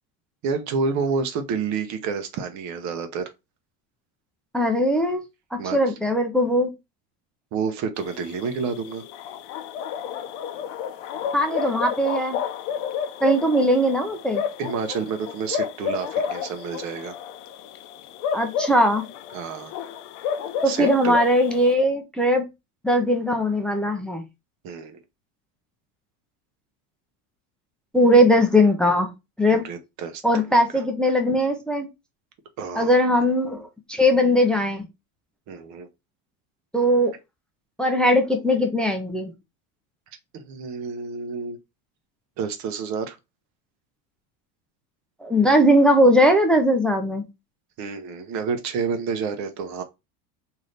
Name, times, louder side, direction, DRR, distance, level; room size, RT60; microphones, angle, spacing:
voice 1, 0.4-3.3 5.6-5.8 7.5-9.0 14.6-17.1 19.3-19.7 20.7-21.2 24.6-25.0 29.5-30.2 30.7-30.8 32.6-32.9 35.5-35.9 40.3-41.6 42.4-43.2 47.8-49.8, right 5 dB, 45° right, 0.8 m, -29 dB
voice 2, 4.5-5.2 5.5-6.7 11.3-12.4 13.2-14.4 18.3-19.1 20.6-22.5 22.8-24.2 27.9-29.1 29.4-29.6 30.2-31.9 32.8-34.9 36.7-37.1 37.8-39.3 45.2-47.2, equal, ahead, 0.4 m, -20 dB
sound 1, 8.0-21.7, left 7 dB, 60° left, 0.6 m, -31 dB
3.2 x 2.8 x 3.8 m
supercardioid pair, 140°, 40 cm